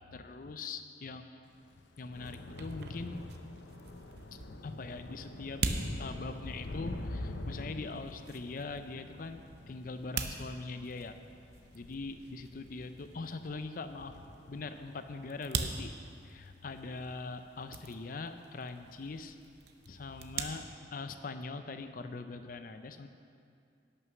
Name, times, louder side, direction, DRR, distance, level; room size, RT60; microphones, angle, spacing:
voice 1, 0.1-1.4 2.0-3.6 4.3-5.6 6.0-11.1 11.7-14.2 14.5-15.9 16.2-19.4 19.9-23.1, left 3 dB, 50° left, 9 dB, 0.5 m, -42 dB
Thunder / Rain, 1.5-18.1 18.5-18.9 19.2-19.4, left 1 dB, 90° left, 0.7 m, -46 dB
sound 1, 2.1-20.4, right 4 dB, 60° right, 0.7 m, -44 dB
11.0 x 6.4 x 6.1 m, 2.4 s
head